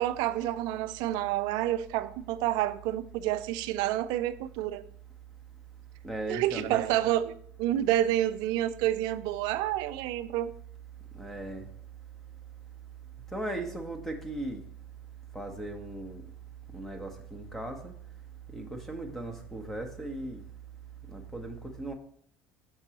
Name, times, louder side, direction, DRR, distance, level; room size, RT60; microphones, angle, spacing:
voice 1, 0.0-4.8 6.3-10.5, right 13 dB, 60° right, 0.4 m, -29 dB
voice 2, 6.0-6.8 11.1-11.7 13.3-14.6 15.3-16.2 16.7-17.9 18.5-20.4 21.1-21.9, right 2 dB, 5° left, 1.0 m, -37 dB
6.5 x 6.1 x 3.0 m
hypercardioid pair, 70°, 8 cm